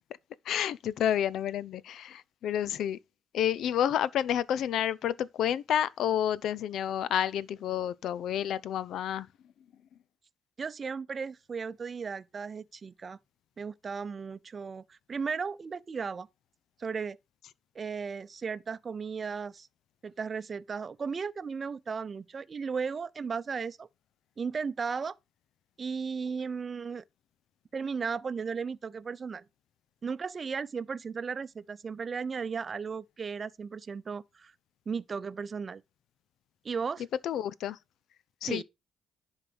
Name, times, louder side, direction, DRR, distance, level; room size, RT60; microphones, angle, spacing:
voice 1, 0.5-3.0 3.3-9.3 37.2-37.8 38.4-38.6, left 10 dB, 65° left, 0.5 m, -30 dB
voice 2, 10.6-13.2 13.6-16.3 16.8-17.2 17.7-19.7 20.0-23.9 24.4-25.1 25.8-27.0 27.7-29.4 30.0-34.5 34.9-35.8 36.6-37.0 38.5-38.6, right 5 dB, 45° right, 0.7 m, -35 dB
11.0 x 4.0 x 6.1 m
hypercardioid pair, 50°, 0 cm